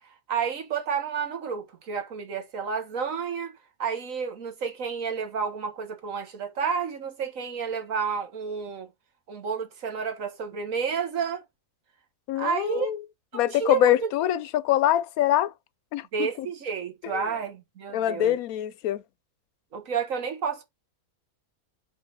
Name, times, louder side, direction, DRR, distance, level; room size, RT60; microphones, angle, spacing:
voice 1, 0.3-3.5 3.8-8.9 9.3-11.4 12.4-12.9 13.4-14.1 16.1-18.4 19.7-20.6, right 6 dB, 60° right, 1.7 m, -30 dB
voice 2, 12.3-13.0 13.3-15.5 15.9-16.5 17.0-17.3 17.9-19.0, left 12 dB, 75° left, 1.0 m, -24 dB
5.2 x 3.9 x 5.1 m
omnidirectional pair, 1.6 m